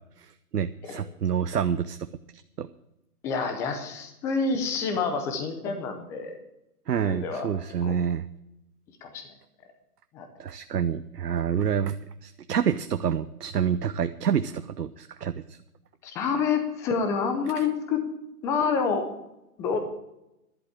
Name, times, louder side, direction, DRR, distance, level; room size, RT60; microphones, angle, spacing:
voice 1, 0.2-2.1 2.6-2.7 6.9-8.3 10.4-12.0 12.2-15.6, right 8 dB, 90° right, 11 dB, 0.7 m, -28 dB
voice 2, 3.2-6.4 7.0-7.5 7.8-7.9 9.0-9.3 10.1-10.3 16.0-18.0 18.4-19.1 19.6-19.8, left 5 dB, 5° left, 6 dB, 0.6 m, -28 dB
11.5 x 7.7 x 8.9 m, 0.87 s
hypercardioid pair, 140°, 46 cm